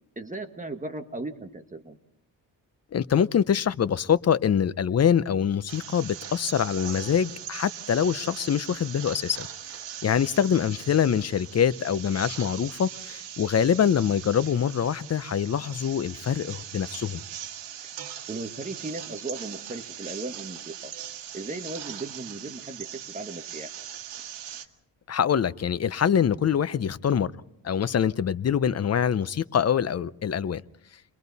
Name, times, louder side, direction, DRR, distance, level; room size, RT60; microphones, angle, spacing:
voice 1, 0.1-2.0 18.3-20.9 21.3-23.7, right 2 dB, 20° right, 5 dB, 1.6 m, -36 dB
voice 2, 2.9-17.2 25.1-27.3 27.6-30.6, left 8 dB, 35° left, 15 dB, 0.7 m, -24 dB
sound 1, 5.7-24.7, right 10 dB, 85° right, 1.6 m, -40 dB
29.5 x 22.0 x 4.1 m, 0.79 s
cardioid pair, 110°, 42 cm